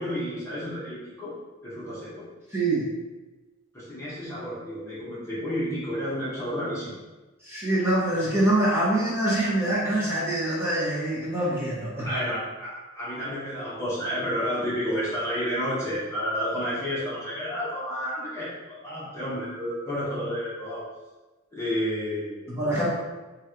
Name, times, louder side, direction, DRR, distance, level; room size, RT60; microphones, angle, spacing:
voice 1, 0.0-1.4 1.6-2.3 3.7-7.0 12.0-20.9 21.5-22.9, equal, 15° left, -10 dB, 1.0 m, -31 dB
voice 2, 2.5-2.9 7.4-12.2 22.5-22.9, right 1 dB, 10° right, -10 dB, 1.1 m, -25 dB
3.1 x 2.5 x 4.4 m, 1.2 s
head